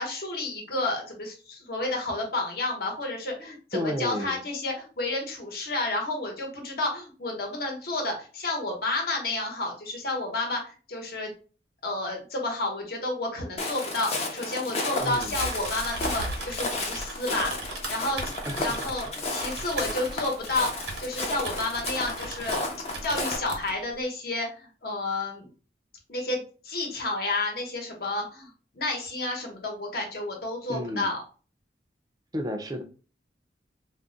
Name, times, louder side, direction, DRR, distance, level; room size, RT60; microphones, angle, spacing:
voice 1, 0.0-11.3 11.8-18.2 18.6-22.6 23.0-25.5 26.1-31.2, left 2 dB, 60° left, 1 dB, 0.9 m, -31 dB
voice 2, 3.7-4.4 15.0-15.4 18.4-18.8 30.7-31.1 32.3-32.8, left 1 dB, 20° right, 5 dB, 0.4 m, -32 dB
Walk footsteps, 13.6-23.4, left 2 dB, 35° left, 0.6 m, -33 dB
Typing, 15.0-22.7 22.9-23.8, right 2 dB, 90° right, 0.9 m, -37 dB
2.3 x 2.1 x 3.8 m, 0.37 s
head